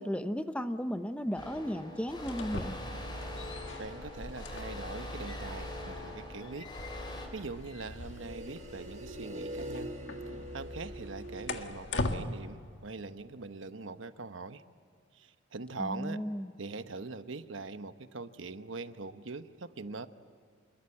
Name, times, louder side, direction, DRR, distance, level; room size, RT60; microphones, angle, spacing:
voice 1, 0.0-2.8 15.8-16.5, equal, 5° left, 9 dB, 0.9 m, -35 dB
sound 1, 1.4-7.3, left 1 dB, 25° left, 4.6 m, -42 dB
sound 2, 2.2-12.2, left 2 dB, 70° left, 1.6 m, -42 dB
sound 3, 3.5-4.5 7.8-11.5, equal, 35° right, 1.8 m, -43 dB
voice 2, 3.8-6.7 7.0-9.9 10.5-14.6 15.1-16.2 16.6-20.1, right 3 dB, 90° right, 10 dB, 1.0 m, -42 dB
27.5 x 21.0 x 8.8 m, 2.3 s
head